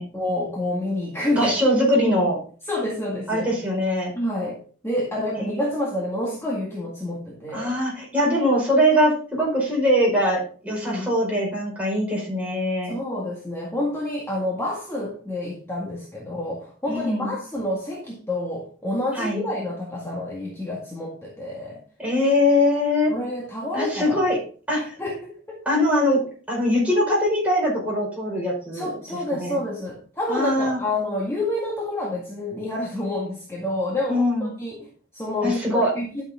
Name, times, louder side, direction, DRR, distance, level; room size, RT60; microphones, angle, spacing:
voice 1, 0.1-1.5 2.7-3.5 4.2-7.8 10.6-11.1 12.9-21.8 23.1-24.3 24.7-25.7 28.7-36.2, left 1 dB, 15° left, -3 dB, 1.8 m, -28 dB
voice 2, 1.4-2.4 3.3-4.1 5.4-5.6 7.5-13.0 16.9-17.3 19.1-19.4 22.0-23.2 23.7-24.4 24.7-25.0 25.6-28.9 29.3-29.6 30.3-30.8 34.1-34.5 35.4-35.9, left 1 dB, 5° right, -4 dB, 4.9 m, -22 dB
11.5 x 6.7 x 3.6 m, 0.41 s
head